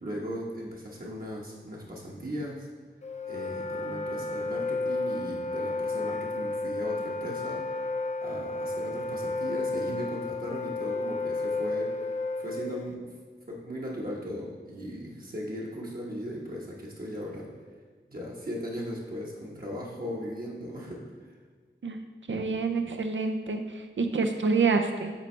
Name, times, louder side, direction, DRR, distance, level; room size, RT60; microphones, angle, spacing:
voice 1, 0.0-2.7 3.3-7.9 8.2-13.1 13.5-17.5 18.1-21.4, equal, 45° right, -4 dB, 1.1 m, -38 dB
Wind instrument woodwind instrument, 3.0-12.9, left 3 dB, 35° left, 0.4 m, -32 dB
voice 2, 22.3-25.1, right 4 dB, 75° right, 6 dB, 0.6 m, -27 dB
8.2 x 4.1 x 3.3 m, 1.5 s
wide cardioid pair, 55°, 20 cm